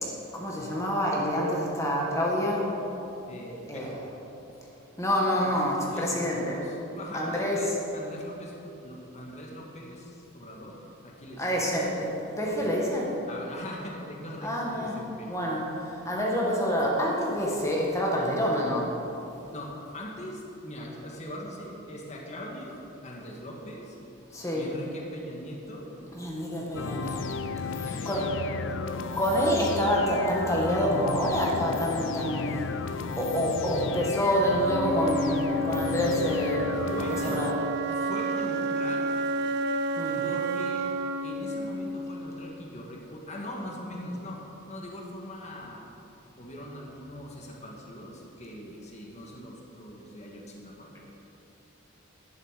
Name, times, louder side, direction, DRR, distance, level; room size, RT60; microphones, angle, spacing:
voice 1, 0.3-2.7 3.7-3.9 5.0-6.6 7.1-7.6 11.4-12.1 12.4-13.1 14.4-15.0 15.3-18.9 24.3-24.7 26.1-27.5 27.8-28.2 29.2-32.6 33.2-36.6 37.2-37.6 40.0-40.2, equal, 15° left, -3 dB, 1.8 m, -27 dB
voice 2, 3.3-4.0 5.4-5.5 5.9-11.7 12.5-12.7 13.3-15.3 19.5-24.0 24.6-25.9 27.5-29.2 36.9-37.5 38.0-39.1 40.2-40.9 41.2-44.4 44.7-45.8 46.4-51.0, equal, 35° left, -2 dB, 1.6 m, -41 dB
sound 1, 26.8-37.5, left 5 dB, 65° left, 0.4 m, -34 dB
Wind instrument woodwind instrument, 34.6-42.6, right 2 dB, 55° right, 0.6 m, -30 dB
11.5 x 10.5 x 5.1 m, 3.0 s
head